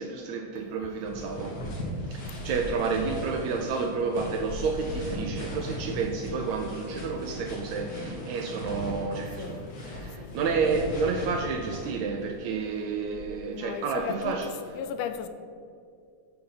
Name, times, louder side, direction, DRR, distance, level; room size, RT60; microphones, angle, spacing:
voice 1, 0.0-1.6 2.1-14.5, right 4 dB, 80° right, 1.7 m, -30 dB
sound 1, 1.0-12.3 12.9-14.4, left 1 dB, 45° left, 1.4 m, -38 dB
voice 2, 13.5-15.3, left 8 dB, 85° left, 2.1 m, -35 dB
6.6 x 5.8 x 5.6 m
omnidirectional pair, 3.7 m